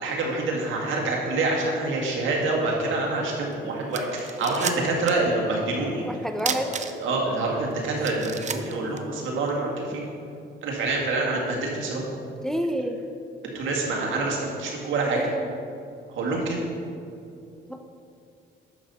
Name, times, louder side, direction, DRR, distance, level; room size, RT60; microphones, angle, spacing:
voice 1, 0.0-6.0 6.5-10.0 10.6-12.0 13.5-15.2 16.1-16.6, right 2 dB, 80° right, -1 dB, 1.9 m, -26 dB
sound 1, 3.5-3.6 3.9-5.3 5.6-5.7 6.4-7.3 7.7-7.8 8.0-9.6, right 6 dB, 35° right, 0.6 m, -32 dB
voice 2, 6.0-6.7 12.4-13.0 15.1-15.5 17.7-17.8, equal, ahead, 6 dB, 0.5 m, -29 dB
10.5 x 6.8 x 4.2 m, 2.6 s
cardioid pair, 90°, 20 cm